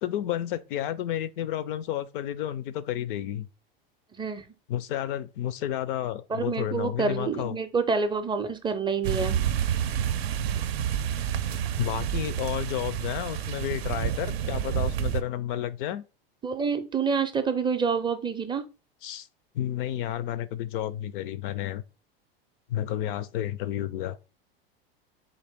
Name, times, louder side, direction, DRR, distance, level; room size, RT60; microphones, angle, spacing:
voice 1, 0.0-3.5 4.7-7.6 11.8-16.0 19.0-19.3 19.5-21.8 22.7-24.2, left 11 dB, 60° left, 0.5 m, -31 dB
voice 2, 4.2-4.5 6.3-9.4 16.4-18.6, right 5 dB, 15° right, 0.4 m, -27 dB
sound 1, 9.0-15.2, right 9 dB, 85° right, 0.5 m, -29 dB
4.0 x 2.5 x 3.5 m
hypercardioid pair, 105°, 30 cm